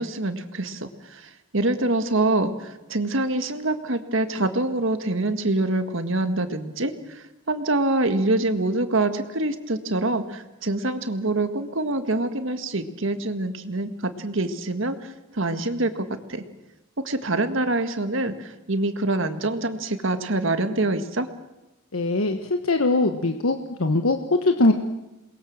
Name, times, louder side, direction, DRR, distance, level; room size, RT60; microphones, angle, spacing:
voice 1, 0.0-16.4 17.0-21.3, right 2 dB, 60° right, 8 dB, 1.8 m, -25 dB
voice 2, 21.9-24.7, left 2 dB, 75° left, 6 dB, 1.3 m, -21 dB
28.5 x 21.5 x 7.4 m, 0.99 s
head